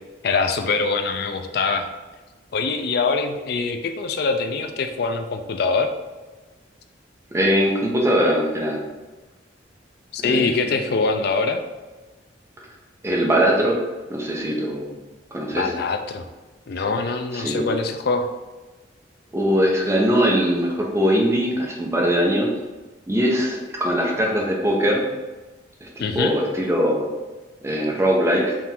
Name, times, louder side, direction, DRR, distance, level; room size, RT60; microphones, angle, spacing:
voice 1, 0.2-1.9 2.5-5.9 10.1-11.6 15.6-16.3 16.7-18.3 26.0-26.4, left 4 dB, 55° left, 6 dB, 0.4 m, -23 dB
voice 2, 7.3-8.8 10.2-10.8 13.0-13.8 14.1-15.0 15.3-15.7 17.3-17.7 19.3-22.5 23.1-25.1 25.8-27.1 27.6-28.6, equal, 15° right, -1 dB, 0.6 m, -21 dB
3.6 x 2.5 x 4.3 m, 1.2 s
head